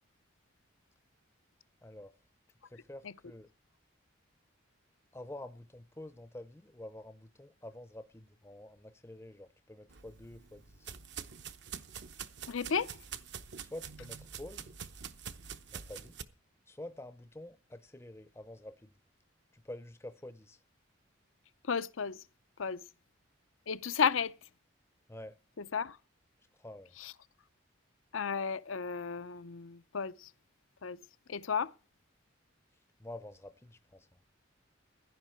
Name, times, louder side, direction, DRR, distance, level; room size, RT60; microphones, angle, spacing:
voice 1, 1.8-2.2 2.6-3.5 5.1-10.9 13.6-14.7 15.7-16.2 16.7-18.9 19.5-20.6 25.1-25.4 26.6-27.0 33.0-34.2, left 1 dB, 15° left, 0.6 m, -48 dB
sound 1, 9.9-16.2, right 7 dB, 55° right, 0.8 m, -46 dB
voice 2, 12.5-13.0 21.6-22.2 22.6-22.8 23.7-24.3 25.6-26.0 27.0-27.1 28.1-30.3 30.8-31.0 31.3-31.7, left 6 dB, 80° left, 0.6 m, -33 dB
15.5 x 11.0 x 4.4 m
head